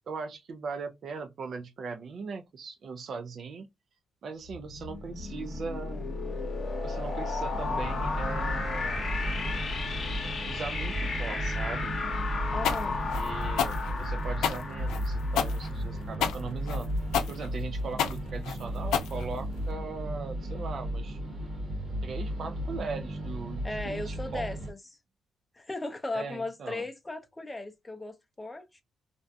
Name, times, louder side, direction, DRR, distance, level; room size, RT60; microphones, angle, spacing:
voice 1, 0.0-3.7 4.2-6.1 6.8-9.2 10.5-11.9 12.9-16.9 17.3-21.2 22.0-24.5 26.1-26.9, right 4 dB, 55° right, 0.4 m, -39 dB
sound 1, 4.5-16.2, left 3 dB, 45° left, 0.9 m, -34 dB
sound 2, 7.5-24.7, equal, 35° right, 1.1 m, -34 dB
voice 2, 12.5-13.0 23.6-24.8 25.5-28.8, left 2 dB, 15° left, 0.6 m, -37 dB
sound 3, 12.6-19.7, left 8 dB, 85° left, 0.3 m, -30 dB
2.5 x 2.1 x 2.6 m
cardioid pair, 90°, 0 cm